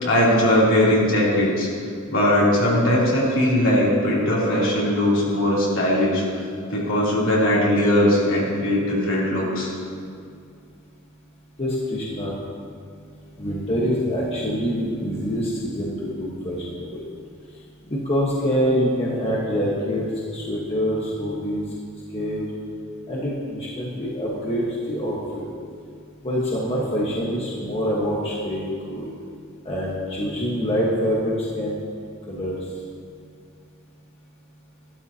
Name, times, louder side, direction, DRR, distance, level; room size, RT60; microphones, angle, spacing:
voice 1, 0.0-1.7 2.1-6.2 6.7-9.7, left 1 dB, 65° left, -6 dB, 3.1 m, -19 dB
voice 2, 11.6-12.3 13.4-17.0 17.9-20.0 20.3-21.6 22.1-22.5 23.1-25.4 26.2-29.1 29.6-31.8 32.3-32.5, equal, 30° left, -5 dB, 1.3 m, -25 dB
13.5 x 12.0 x 2.8 m, 2.3 s
head